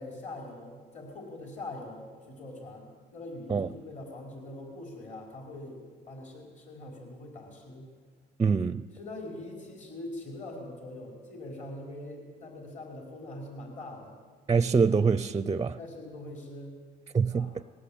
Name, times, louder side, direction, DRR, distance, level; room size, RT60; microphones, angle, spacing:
voice 1, 0.0-5.8 6.0-7.9 8.9-14.2 15.8-16.7 17.3-17.5, left 1 dB, 45° left, 4.9 m, -43 dB
voice 2, 8.4-8.8 14.5-15.8 17.1-17.6, right 5 dB, 20° right, 0.5 m, -25 dB
20.5 x 16.5 x 8.8 m
cardioid pair, 110°, 17 cm